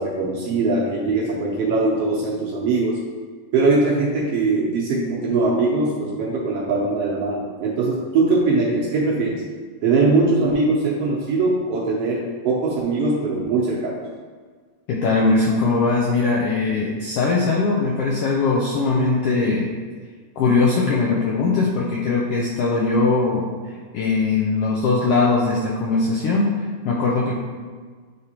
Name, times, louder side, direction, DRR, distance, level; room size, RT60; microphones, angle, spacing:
voice 1, 0.0-3.0 3.5-9.4 9.8-14.0, right 3 dB, 70° right, -3 dB, 1.6 m, -21 dB
voice 2, 14.9-19.7 20.4-23.5 23.9-26.5 26.8-27.4, left 3 dB, 80° left, -3 dB, 1.4 m, -20 dB
9.5 x 3.4 x 2.8 m, 1.6 s
omnidirectional pair, 3.4 m